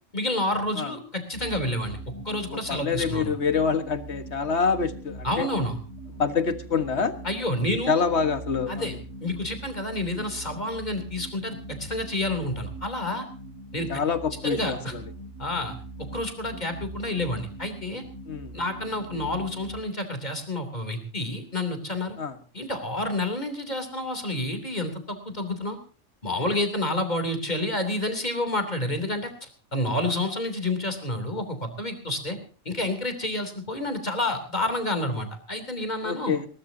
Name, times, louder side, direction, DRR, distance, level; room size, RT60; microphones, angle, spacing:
voice 1, 0.1-2.0 2.2-3.3 5.2-5.8 7.2-8.0 8.7-13.2 13.7-14.0 14.4-14.9 15.4-15.7 16.1-18.0 18.5-22.2 22.5-25.8 26.2-32.4 32.6-36.3, left 1 dB, 35° left, 7 dB, 3.3 m, -29 dB
sound 1, 1.3-19.8, right 1 dB, 85° right, 2.7 m, -42 dB
voice 2, 2.5-5.5 6.1-7.1 7.9-9.0 13.9-15.0 18.3-18.6 22.2-22.4 36.0-36.5, left 5 dB, 60° left, 9 dB, 1.8 m, -26 dB
20.5 x 19.0 x 2.8 m, 0.38 s
omnidirectional pair, 1.3 m